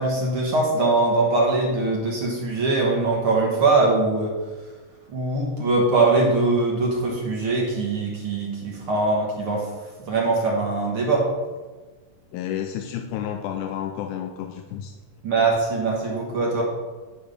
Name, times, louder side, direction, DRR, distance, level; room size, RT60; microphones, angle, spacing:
voice 1, 0.0-4.3 5.1-9.6 10.1-11.3 15.2-16.6, right 3 dB, 60° right, -2 dB, 1.6 m, -22 dB
voice 2, 12.3-14.9, left 10 dB, 80° left, 4 dB, 1.9 m, -31 dB
10.0 x 3.6 x 5.1 m, 1.3 s
omnidirectional pair, 3.7 m